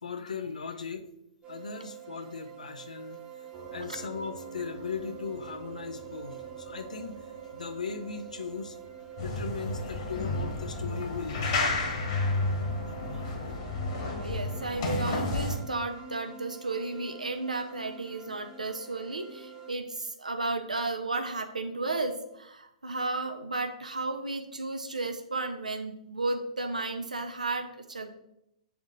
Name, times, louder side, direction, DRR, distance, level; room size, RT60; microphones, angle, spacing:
voice 1, 0.0-1.1 1.5-8.8 9.2-12.3, left 5 dB, 75° left, 8 dB, 0.6 m, -38 dB
sound 1, 1.4-19.7, right 7 dB, 20° right, 0.6 m, -47 dB
Piano, 3.5-10.0, right 3 dB, 40° right, 1.1 m, -48 dB
sound 2, 9.2-15.6, left 2 dB, 45° left, 1.4 m, -31 dB
voice 2, 14.2-28.1, right 3 dB, 85° right, 6 dB, 0.7 m, -33 dB
7.2 x 3.5 x 3.7 m, 0.84 s
figure-of-eight pair, 115°, 4 cm